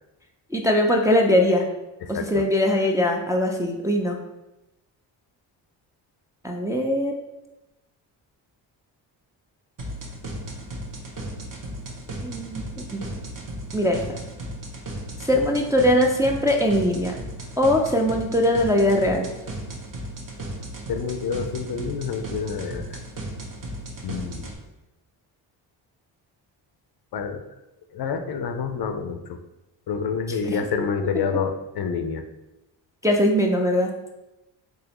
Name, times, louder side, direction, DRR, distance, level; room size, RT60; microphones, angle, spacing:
voice 1, 0.5-1.7 2.1-4.2 6.4-7.1 12.2-13.0 13.7-14.0 15.2-17.2 17.6-19.3 30.5-30.8 33.0-33.9, left 1 dB, 5° right, 0 dB, 0.4 m, -21 dB
voice 2, 2.0-2.4 20.9-23.0 24.0-24.5 27.1-27.4 27.9-29.4 29.9-32.2, left 6 dB, 50° left, 6 dB, 0.6 m, -28 dB
sound 1, 9.8-24.5, right 1 dB, 40° right, 0.9 m, -35 dB
3.8 x 3.0 x 2.9 m, 0.96 s
supercardioid pair, 50°, 49 cm